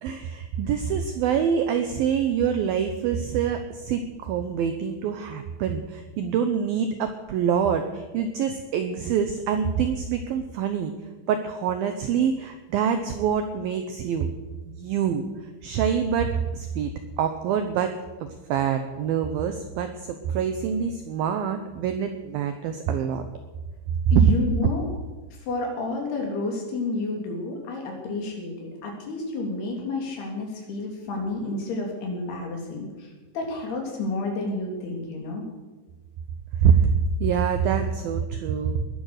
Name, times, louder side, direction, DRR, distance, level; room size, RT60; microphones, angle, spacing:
voice 1, 0.0-10.9 11.3-14.3 14.7-15.3 15.6-16.9 17.2-23.2 36.6-36.9 37.2-38.8, right 7 dB, 75° right, 7 dB, 2.3 m, -25 dB
voice 2, 24.1-24.8 25.5-32.9 33.3-35.4, left 3 dB, 60° left, 1 dB, 5.0 m, -30 dB
20.5 x 10.5 x 6.6 m, 1.2 s
omnidirectional pair, 5.2 m